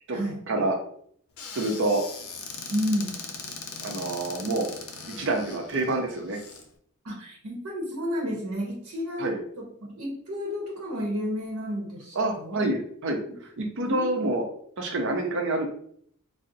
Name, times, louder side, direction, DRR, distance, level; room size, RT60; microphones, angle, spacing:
voice 1, 0.1-0.4 2.7-3.2 7.0-12.6 13.3-13.4 13.8-14.3, equal, 80° right, -2 dB, 0.8 m, -31 dB
Squeak / Cupboard open or close, 1.4-6.6, left 5 dB, 65° left, 0.5 m, -40 dB
voice 2, 1.5-2.0 3.8-4.7 5.2-6.4 9.2-9.4 12.1-13.2 13.6-14.4 14.8-15.7, right 2 dB, 60° right, 2 dB, 0.5 m, -27 dB
2.5 x 2.0 x 3.8 m, 0.63 s
head